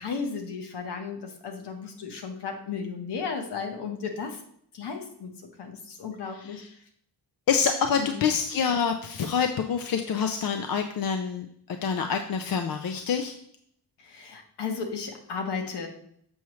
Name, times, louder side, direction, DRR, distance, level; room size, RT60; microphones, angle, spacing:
voice 1, 0.0-4.4 4.7-5.3 5.6-6.6 8.0-8.2 14.0-15.9, left 5 dB, 75° left, 4 dB, 1.2 m, -34 dB
voice 2, 7.5-11.5 11.8-13.3, left 6 dB, 55° left, 6 dB, 0.5 m, -26 dB
7.1 x 5.9 x 3.1 m, 0.68 s
wide cardioid pair, 165°, 41 cm